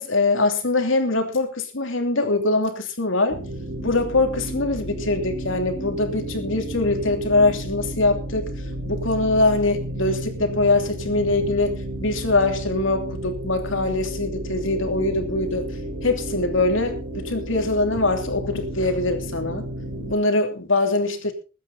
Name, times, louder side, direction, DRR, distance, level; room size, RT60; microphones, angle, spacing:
voice 1, 0.0-3.4 3.8-8.5 8.9-15.7 16.0-19.6 20.1-21.3, left 2 dB, 70° left, 2.9 m, -23 dB
sound 1, 3.3-20.1, right 1 dB, 55° right, 4.3 m, -32 dB
21.0 x 9.3 x 4.1 m
head